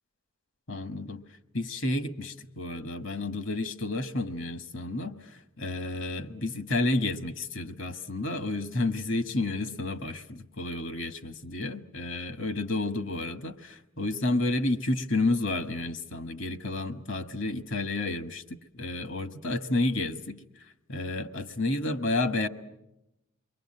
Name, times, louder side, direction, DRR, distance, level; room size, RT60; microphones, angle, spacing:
voice 1, 0.7-1.2 1.5-20.4 20.9-22.5, left 2 dB, 60° left, 10 dB, 1.3 m, -31 dB
28.5 x 23.0 x 7.5 m, 0.90 s
head